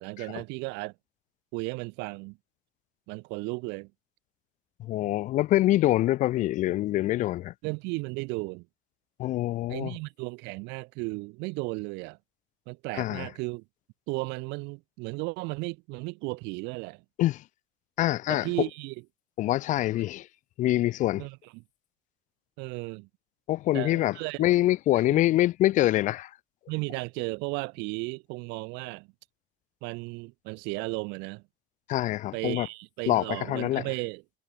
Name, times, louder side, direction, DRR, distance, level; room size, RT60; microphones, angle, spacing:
voice 1, 0.0-0.9 1.5-2.4 3.1-3.9 7.6-8.7 9.7-12.2 12.7-13.6 14.1-17.0 18.3-18.9 21.2-21.6 22.6-23.1 23.7-24.4 25.1-25.2 26.7-29.1 29.8-31.4 32.3-34.2, right 27 dB, 75° right, 1.2 m, -35 dB
voice 2, 4.8-7.5 9.2-9.9 12.9-13.3 17.2-17.4 18.0-18.5 19.4-20.3 20.6-21.3 23.5-26.3 31.9-32.7 33.1-33.9, left 15 dB, 45° left, 0.5 m, -25 dB
cardioid pair, 150°, 18 cm